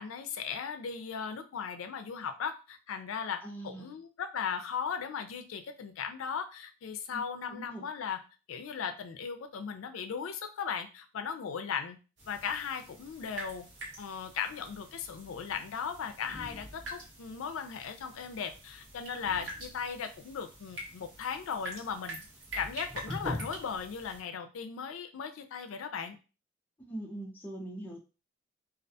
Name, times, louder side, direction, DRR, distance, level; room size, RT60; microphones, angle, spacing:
voice 1, 0.0-8.2 8.5-12.0 12.3-13.7 14.0-22.2 22.6-26.2, left 7 dB, 90° left, 7 dB, 0.4 m, -37 dB
voice 2, 3.4-3.9 7.1-7.2 7.5-7.8 26.8-28.0, right 1 dB, 10° left, -1 dB, 0.4 m, -42 dB
sound 1, 12.2-24.2, equal, 65° right, 1.0 m, -44 dB
2.3 x 2.1 x 2.6 m, 0.32 s
head